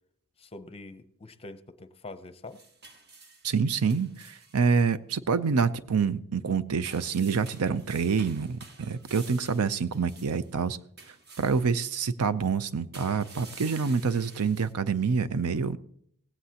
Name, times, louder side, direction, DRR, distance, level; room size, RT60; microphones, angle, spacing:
voice 1, 0.4-2.6, left 2 dB, 25° left, 11 dB, 0.6 m, -44 dB
sound 1, 2.4-4.6 6.8-10.5 11.0-12.0 12.9-14.7, right 3 dB, 50° right, 1.5 m, -50 dB
voice 2, 3.4-10.8 11.4-15.8, right 5 dB, 80° right, 15 dB, 0.6 m, -27 dB
17.5 x 15.5 x 2.9 m, 0.70 s
head